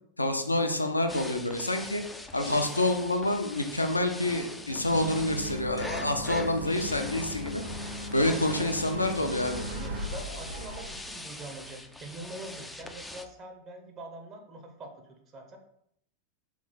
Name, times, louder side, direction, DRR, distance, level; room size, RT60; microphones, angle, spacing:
voice 1, 0.2-2.0 2.3-7.6 8.1-9.7, left 1 dB, 85° left, 6 dB, 0.4 m, -27 dB
sound 1, 1.1-13.3, left 1 dB, 5° left, 0.3 m, -42 dB
sound 2, 4.7-10.1, left 1 dB, 55° right, 1.0 m, -40 dB
Bird, 4.8-11.1, equal, 85° right, 0.8 m, -41 dB
voice 2, 8.2-8.8 9.2-9.3 9.7-15.6, right 2 dB, 30° right, 4 dB, 0.7 m, -44 dB
3.6 x 3.0 x 3.9 m, 0.73 s
figure-of-eight pair, 90°, 0 cm